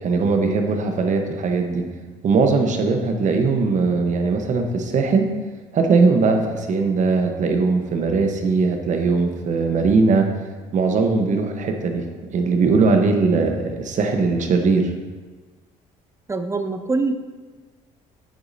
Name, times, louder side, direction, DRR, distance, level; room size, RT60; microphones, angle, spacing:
voice 1, 0.0-1.8 2.2-5.2 5.7-10.3 10.7-14.9, right 4 dB, 50° right, 4 dB, 1.2 m, -20 dB
voice 2, 16.3-17.1, right 3 dB, 15° right, 8 dB, 0.7 m, -23 dB
9.4 x 8.0 x 2.8 m, 1.3 s
supercardioid pair, 75°, 16 cm